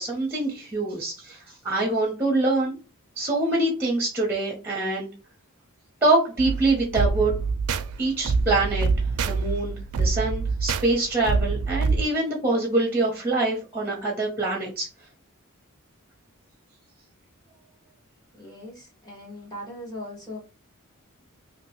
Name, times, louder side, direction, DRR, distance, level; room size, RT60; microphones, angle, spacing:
voice 1, 0.0-1.4 1.6-2.8 3.2-5.1 6.0-7.3 8.0-8.9 9.2-14.9, right 2 dB, 10° right, -1 dB, 0.8 m, -25 dB
sound 1, 6.4-12.0, right 4 dB, 85° right, 0.4 m, -26 dB
voice 2, 18.4-20.4, left 1 dB, 20° left, -2 dB, 1.3 m, -39 dB
2.9 x 2.6 x 2.9 m, 0.33 s
head